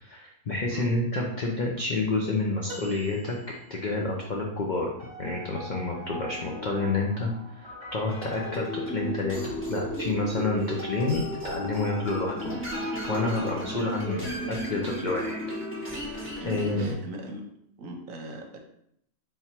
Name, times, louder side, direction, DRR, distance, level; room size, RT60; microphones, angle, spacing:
voice 1, 0.0-3.4 3.7-4.9 5.2-12.6 13.1-15.4 15.9-16.9, left 3 dB, 70° left, -1 dB, 0.4 m, -29 dB
sound 1, 2.7-4.1 6.5-6.7 8.0-8.1, equal, 15° right, 0.9 m, -44 dB
sound 2, 5.0-9.3, left 1 dB, 55° left, 2.0 m, -43 dB
sound 3, 8.1-16.9, equal, 10° left, 1.1 m, -34 dB
voice 2, 16.3-17.5 17.8-18.6, right 1 dB, 65° right, 3 dB, 1.1 m, -39 dB
3.9 x 2.8 x 4.3 m, 0.72 s
omnidirectional pair, 1.6 m